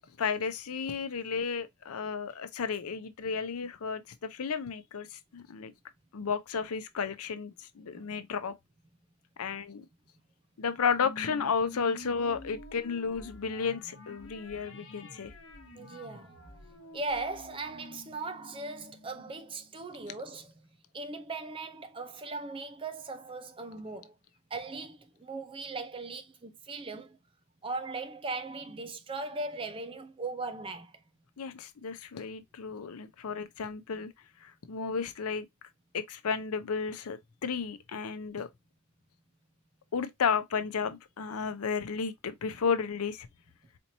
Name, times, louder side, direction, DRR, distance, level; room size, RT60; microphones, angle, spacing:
voice 1, 0.2-5.7 6.1-8.5 9.4-9.8 10.6-15.3 31.4-34.1 34.4-35.5 35.9-38.5 39.9-43.3, left 6 dB, 90° left, 0.6 m, -33 dB
sound 1, 11.0-19.8, left 1 dB, 60° left, 1.0 m, -49 dB
voice 2, 15.7-24.1 24.5-27.2 27.6-31.0, right 3 dB, 25° right, 0.5 m, -39 dB
4.3 x 2.9 x 2.6 m
head